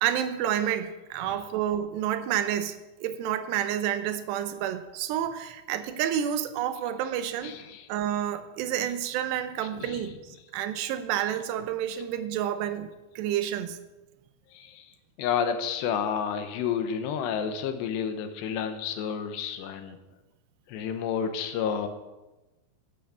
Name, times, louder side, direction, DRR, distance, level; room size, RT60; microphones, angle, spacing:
voice 1, 0.0-7.6 7.9-12.9 13.2-13.8, right 10 dB, 80° right, 2.9 m, -29 dB
voice 2, 1.2-1.5 7.4-7.9 8.8-8.9 9.6-10.2 14.5-14.9 15.2-20.0 20.7-21.9, left 7 dB, 85° left, 3.1 m, -31 dB
10.5 x 10.5 x 6.9 m
omnidirectional pair, 5.0 m